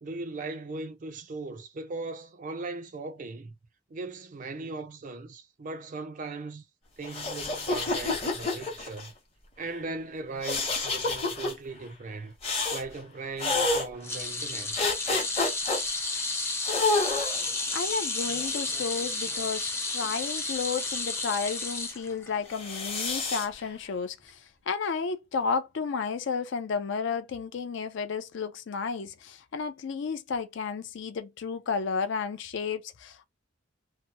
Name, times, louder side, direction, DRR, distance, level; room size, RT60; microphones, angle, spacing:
voice 1, 0.0-3.5 3.9-6.6 7.0-9.1 9.6-12.3 12.7-14.8, right 3 dB, 40° right, 0.4 m, -38 dB
sound 1, 7.0-9.1 10.4-11.5 12.4-12.8 13.4-13.9 14.8-15.8 16.6-17.5 18.3-19.5 22.5-23.5, left 3 dB, 30° left, 0.9 m, -29 dB
sound 2, 14.0-22.5 22.9-23.1 24.3-24.4, left 3 dB, 15° left, 0.5 m, -32 dB
voice 2, 17.7-33.3, left 5 dB, 65° left, 0.4 m, -32 dB
2.8 x 2.2 x 2.8 m
head